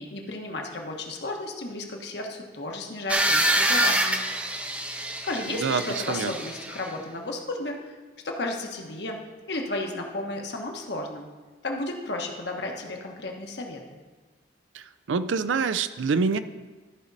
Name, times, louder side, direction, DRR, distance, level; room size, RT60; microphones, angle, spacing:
voice 1, 0.0-4.2 5.2-7.9 8.2-9.2 9.5-11.3 11.6-13.8, left 2 dB, 65° left, 2 dB, 1.1 m, -33 dB
sound 1, 3.1-6.9, right 1 dB, 5° right, 0.4 m, -26 dB
voice 2, 5.5-6.3 14.7-16.4, right 5 dB, 90° right, 13 dB, 0.4 m, -26 dB
13.5 x 5.2 x 4.0 m, 1.3 s
head